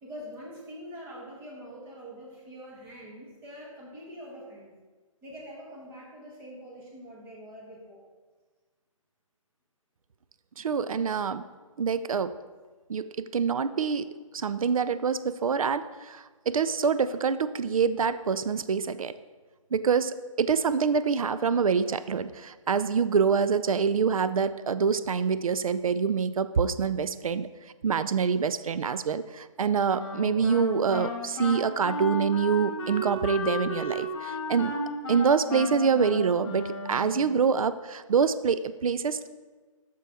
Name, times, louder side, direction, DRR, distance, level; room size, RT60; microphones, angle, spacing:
voice 1, 0.0-4.7 5.2-8.0, equal, 10° right, -3 dB, 1.1 m, -44 dB
voice 2, 10.6-11.5 11.8-12.3 12.9-14.1 14.3-19.1 19.7-27.5 27.8-34.8 35.1-39.3, right 6 dB, 80° right, 13 dB, 0.4 m, -26 dB
Wind instrument woodwind instrument, 30.0-37.4, left 1 dB, 40° left, 1.5 m, -34 dB
6.7 x 6.2 x 3.4 m, 1.4 s
hypercardioid pair, 155°, 18 cm